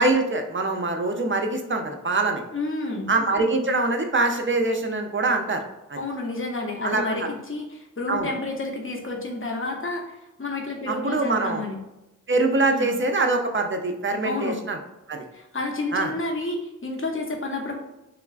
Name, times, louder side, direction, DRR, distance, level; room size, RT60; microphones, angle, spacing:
voice 1, 0.0-2.4 3.1-5.6 5.9-6.0 6.8-7.3 8.1-8.3 10.9-11.6 12.3-14.8 15.1-15.2 15.9-16.1, right 2 dB, 40° right, 4 dB, 0.4 m, -24 dB
voice 2, 2.5-3.1 6.0-10.1 10.4-11.8 12.5-12.9 14.2-14.6 15.3-17.7, left 2 dB, 40° left, 1 dB, 0.6 m, -30 dB
3.1 x 2.3 x 2.3 m, 0.95 s
wide cardioid pair, 45°, 32 cm